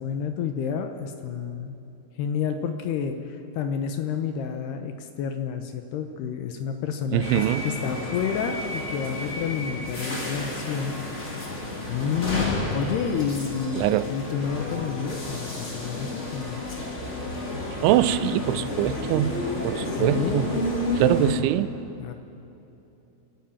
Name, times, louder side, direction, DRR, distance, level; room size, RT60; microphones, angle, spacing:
voice 1, 0.0-1.8 2.2-10.9 11.9-16.7 19.9-20.4 22.0-22.1, left 7 dB, 75° left, 7 dB, 2.7 m, -30 dB
voice 2, 7.1-7.6 13.8-14.1 17.8-19.4 19.6-20.5 21.0-21.7, right 14 dB, 85° right, 14 dB, 3.0 m, -23 dB
sound 1, 7.2-21.3, left 2 dB, 30° left, 1.3 m, -31 dB
27.5 x 11.5 x 8.8 m, 2.9 s
omnidirectional pair, 5.4 m